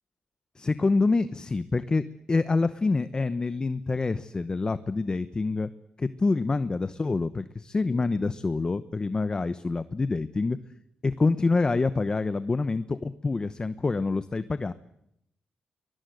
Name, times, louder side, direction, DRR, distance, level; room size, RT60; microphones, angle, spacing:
voice 1, 0.6-5.7 6.0-10.6 11.0-14.7, left 3 dB, 30° left, 13 dB, 1.0 m, -26 dB
24.0 x 21.0 x 7.9 m, 0.76 s
cardioid pair, 85°, 3 cm